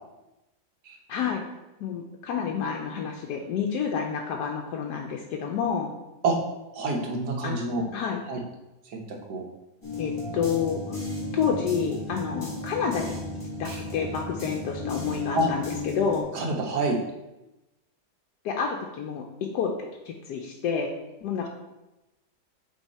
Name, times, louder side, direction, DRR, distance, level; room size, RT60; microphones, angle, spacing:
voice 1, 1.1-1.4 1.8-5.9 7.4-7.6 7.9-8.2 10.0-11.0 11.3-13.2 13.6-16.3 18.4-19.7 20.1-20.9 21.2-21.5, left 6 dB, 85° left, 1 dB, 1.2 m, -29 dB
voice 2, 6.7-7.8 8.3-8.4 8.8-9.4 13.6-13.8 15.3-15.5 16.3-17.0, right 2 dB, 80° right, 1 dB, 1.6 m, -27 dB
sound 1, 9.8-16.2, left 3 dB, 15° left, 2.0 m, -34 dB
8.2 x 3.6 x 4.2 m, 0.99 s
omnidirectional pair, 1.7 m